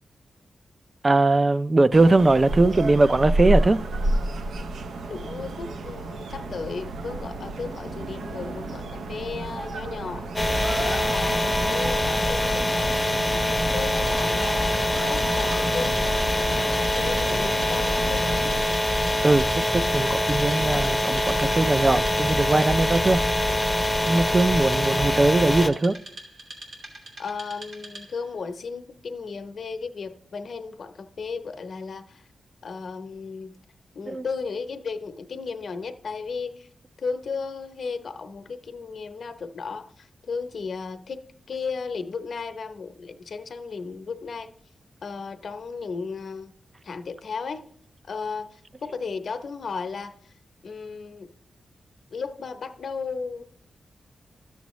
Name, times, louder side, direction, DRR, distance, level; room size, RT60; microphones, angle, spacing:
voice 1, 1.0-3.8 19.2-23.2 24.1-26.0 34.1-34.2, right 2 dB, 30° right, 0.3 m, -20 dB
sound 1, 1.9-18.6, right 2 dB, 90° right, 0.5 m, -31 dB
voice 2, 5.1-14.8 15.1-16.2 16.6-18.5 27.2-32.3 32.6-33.5 33.9-36.7 37.0-44.5 45.0-46.5 46.8-47.7 48.1-50.3 50.6-51.3 52.1-53.5, left 5 dB, 65° left, 0.7 m, -35 dB
sound 2, 10.4-25.7, left 1 dB, 20° left, 0.6 m, -24 dB
Wood, 13.7-28.3, right 2 dB, 70° right, 2.7 m, -43 dB
12.5 x 7.1 x 3.1 m
cardioid pair, 85°, 0 cm